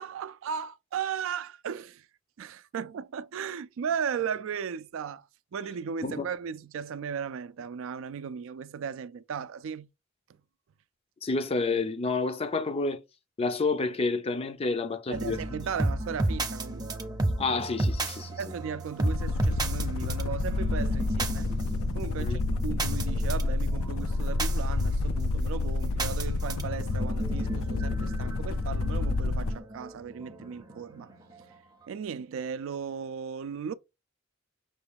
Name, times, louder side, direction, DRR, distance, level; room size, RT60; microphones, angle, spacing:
voice 1, 0.0-2.0 2.4-5.2 5.5-9.9 15.1-16.9 18.4-21.5 21.9-31.1 31.9-33.7, right 7 dB, 70° right, 0.3 m, -36 dB
voice 2, 11.2-13.0 13.4-15.4 17.4-18.5 22.2-22.4, left 3 dB, 30° left, 0.4 m, -29 dB
sound 1, 15.1-31.5, right 2 dB, 20° right, 0.6 m, -34 dB
sound 2, 19.0-29.6, left 3 dB, 90° left, 0.4 m, -29 dB
5.9 x 2.3 x 3.3 m
head